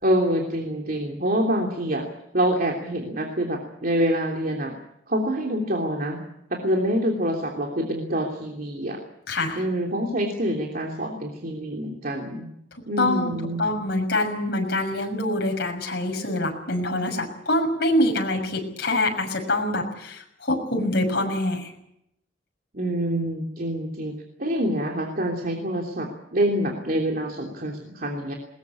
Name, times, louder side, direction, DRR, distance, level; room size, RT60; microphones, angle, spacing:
voice 1, 0.0-2.0 2.3-4.7 5.1-6.2 6.5-9.0 9.6-12.5 12.9-13.6 22.7-24.1 24.4-28.3, right 1 dB, 50° right, 1 dB, 3.1 m, -26 dB
voice 2, 9.3-9.6 13.0-21.7, left 1 dB, 60° left, 2 dB, 6.4 m, -25 dB
21.0 x 20.0 x 8.5 m, 0.79 s
head